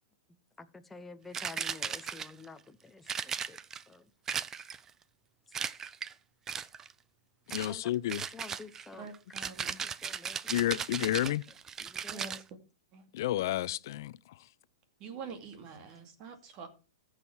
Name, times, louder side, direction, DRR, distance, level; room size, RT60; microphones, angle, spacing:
voice 1, 0.6-3.6 3.9-4.0 7.6-7.8 8.3-9.1 9.7-9.8 10.0-10.7 11.8-12.4, left 3 dB, 5° left, 0.9 m, -49 dB
sound 1, 1.3-2.5 3.1-3.8 4.3-4.9 5.5-6.1 6.5-6.9 7.5-7.8 8.1-12.4, right 7 dB, 20° right, 0.5 m, -37 dB
voice 2, 7.5-8.3 10.5-11.4 13.1-14.5, left 14 dB, 60° left, 0.6 m, -31 dB
voice 3, 9.0-9.8 12.1-12.4 12.9-13.0 15.0-16.7, right 5 dB, 35° right, 2.5 m, -45 dB
14.5 x 6.4 x 4.7 m
hypercardioid pair, 135°, 2 cm